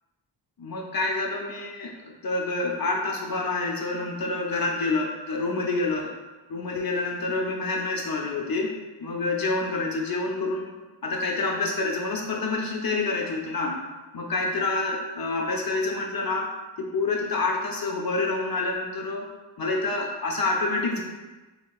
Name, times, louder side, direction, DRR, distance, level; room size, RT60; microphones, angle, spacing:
voice 1, 0.6-1.9 2.2-6.1 6.5-8.7 9.0-13.8 14.1-16.5 16.8-19.3 19.6-21.0, left 3 dB, 55° left, 1 dB, 0.6 m, -27 dB
6.5 x 2.8 x 2.3 m, 1.2 s
wide cardioid pair, 125°, 44 cm